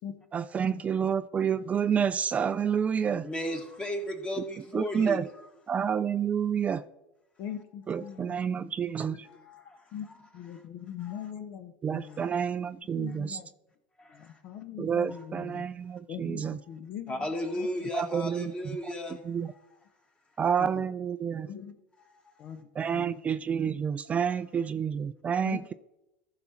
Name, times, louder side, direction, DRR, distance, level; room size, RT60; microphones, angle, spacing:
voice 1, 0.3-3.2 4.7-5.2 5.7-6.8 7.9-9.1 11.8-13.3 14.8-16.6 17.9-18.4 19.3-19.5 20.4-21.5 22.8-25.6, right 7 dB, 30° right, 13 dB, 0.3 m, -29 dB
voice 2, 3.2-5.5 8.0-8.1 9.2-9.9 11.1-11.3 12.0-12.5 14.0-14.4 15.1-15.3 16.4-16.5 17.1-19.2 19.5-19.8 22.2-22.4 24.1-24.5, left 1 dB, 20° left, 4 dB, 1.9 m, -36 dB
voice 3, 7.4-9.2 9.9-10.1 10.3-12.3 12.8-13.5 14.1-15.6 16.1-17.3 17.6-17.7 20.6-20.9 21.5-21.8 22.4-23.2 25.4-25.7, left 9 dB, 60° left, 9 dB, 0.9 m, -42 dB
14.0 x 5.8 x 4.2 m, 0.95 s
hypercardioid pair, 85°, 5 cm